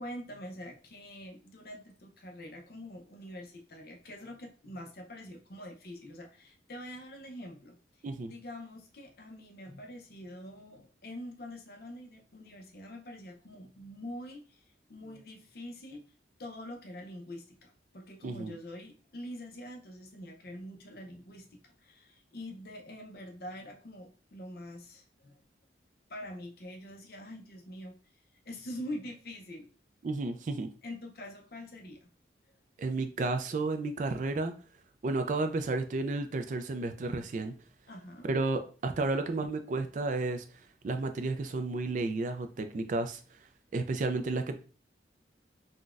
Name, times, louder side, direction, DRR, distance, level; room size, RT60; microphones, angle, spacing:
voice 1, 0.0-14.6 14.9-16.0 16.4-25.4 26.1-27.9 28.5-29.7 30.8-32.1 37.9-38.3, left 1 dB, 55° left, 2 dB, 0.6 m, -45 dB
voice 2, 30.0-30.7 32.8-34.5 35.0-37.5 38.2-40.4 40.8-43.2 43.7-44.5, right 3 dB, 45° right, 8 dB, 0.3 m, -32 dB
3.8 x 2.2 x 2.4 m, 0.37 s
head